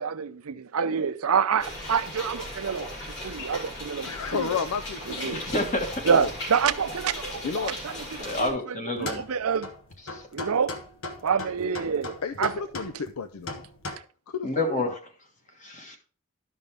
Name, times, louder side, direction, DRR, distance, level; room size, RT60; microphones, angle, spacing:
voice 1, 0.0-2.9 3.2-4.1 4.4-4.5 5.2-5.4 6.0-7.9 8.4-9.7 10.3-10.7 11.2-12.5, right 6 dB, 90° right, 0.6 m, -27 dB
sound 1, 1.6-8.5, left 1 dB, 55° left, 2.8 m, -37 dB
voice 2, 4.0-5.6 6.1-6.3 7.4-7.8 10.1-10.2 12.2-13.6 14.3-14.9, left 6 dB, 90° left, 0.5 m, -32 dB
voice 3, 5.3-6.0 8.2-9.2 10.1-10.2 14.4-15.0 15.6-16.0, left 2 dB, 35° left, 1.5 m, -29 dB
sound 2, 9.0-13.9, left 2 dB, 70° left, 1.0 m, -38 dB
12.5 x 5.4 x 3.4 m
head